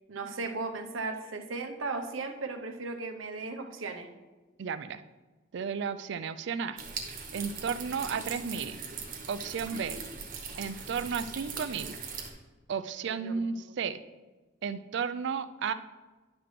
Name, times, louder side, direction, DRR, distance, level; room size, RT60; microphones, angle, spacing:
voice 1, 0.1-4.1 9.7-9.9 13.0-13.3 13.7-13.8, right 3 dB, 90° right, 5 dB, 0.8 m, -36 dB
voice 2, 4.6-5.0 5.5-6.8 7.3-8.8 9.3-10.0 10.6-12.0 12.7-14.0 14.6-15.7, right 6 dB, 65° right, 12 dB, 0.4 m, -33 dB
sound 1, 6.8-12.3, right 5 dB, 45° right, 1.1 m, -40 dB
10.5 x 5.9 x 3.2 m, 1.2 s
head